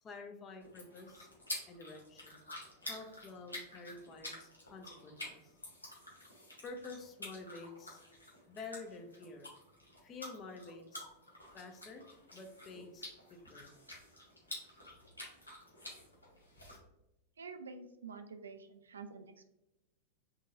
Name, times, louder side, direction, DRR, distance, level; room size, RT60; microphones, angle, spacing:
voice 1, 0.0-1.3 1.6-2.4 2.8-5.5 6.6-8.0 8.5-9.5 10.0-11.1 11.5-12.1 12.3-13.7, left 3 dB, 25° left, 4 dB, 0.7 m, -49 dB
sound 1, 0.6-16.8, left 1 dB, 85° left, 1.3 m, -49 dB
voice 2, 17.4-19.5, right 5 dB, 70° right, 8 dB, 0.4 m, -48 dB
4.1 x 3.9 x 2.5 m, 0.92 s
figure-of-eight pair, 90°, 0 cm